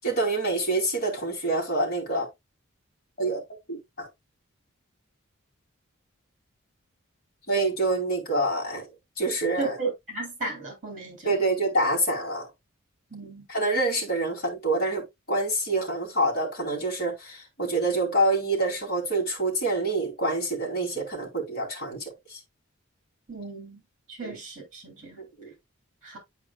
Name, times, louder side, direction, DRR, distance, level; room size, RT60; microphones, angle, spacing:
voice 1, 0.0-2.3 3.2-3.4 3.7-4.1 7.5-8.8 9.2-9.8 11.2-12.5 13.5-22.4 24.2-24.4 25.2-25.5, right 2 dB, 45° left, 2.8 m, -26 dB
voice 2, 9.6-11.3 13.1-13.4 23.3-23.8 24.2-25.2 26.0-26.2, right 3 dB, 35° right, 3.3 m, -34 dB
9.5 x 4.7 x 2.3 m
head